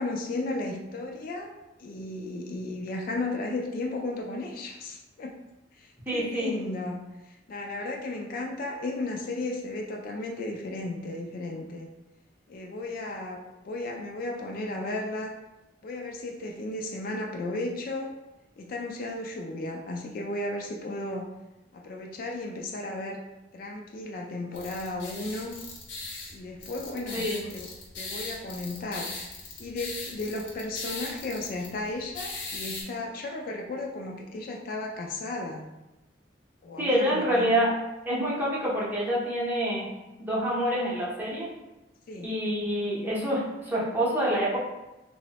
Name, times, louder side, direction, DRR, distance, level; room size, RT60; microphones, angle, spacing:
voice 1, 0.0-1.5 1.8-5.3 5.7-11.9 12.5-15.3 15.8-18.2 18.6-21.3 21.7-23.2 23.5-25.6 26.3-27.7 27.9-29.1 29.6-35.7 36.6-37.5 42.1-42.3, left 2 dB, 50° left, 1 dB, 0.3 m, -34 dB
voice 2, 6.1-6.5 27.1-27.4 36.8-37.7 38.0-39.9 40.2-41.5 42.2-44.6, equal, 10° right, -6 dB, 0.7 m, -27 dB
sound 1, 24.5-32.8, left 3 dB, 70° left, 0.7 m, -39 dB
3.1 x 2.0 x 2.7 m, 1.0 s
head